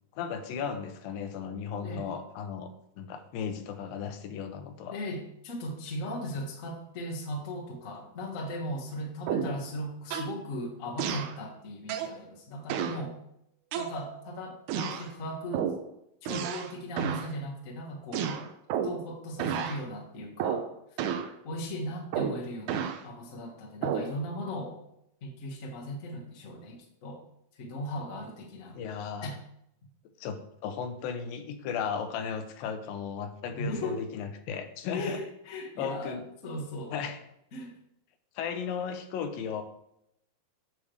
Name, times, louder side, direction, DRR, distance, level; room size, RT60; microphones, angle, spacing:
voice 1, 0.1-2.7 3.0-5.0 28.8-29.4 30.2-35.2 35.8-36.3 36.9-37.2 38.4-39.6, left 6 dB, 85° left, 8 dB, 2.5 m, -35 dB
voice 2, 4.9-13.2 13.7-15.7 16.2-18.3 18.8-20.7 21.4-24.8 25.2-27.2 27.5-28.8 29.2-29.3 33.5-34.1 34.9-37.0 37.5-37.7, equal, 60° left, -1 dB, 0.8 m, -37 dB
sound 1, 9.3-9.6 10.1-10.4 11.0-11.4 11.9-12.2 12.7-13.0 13.7-14.3 14.7-15.1 15.5-15.8 16.3-16.7 17.0-17.3 18.1-19.1 19.4-19.8 20.4-20.7 21.0-21.3 22.1-23.0 23.8-24.1, right 8 dB, 80° right, 1.8 m, -31 dB
9.0 x 3.3 x 6.3 m, 0.78 s
omnidirectional pair, 4.0 m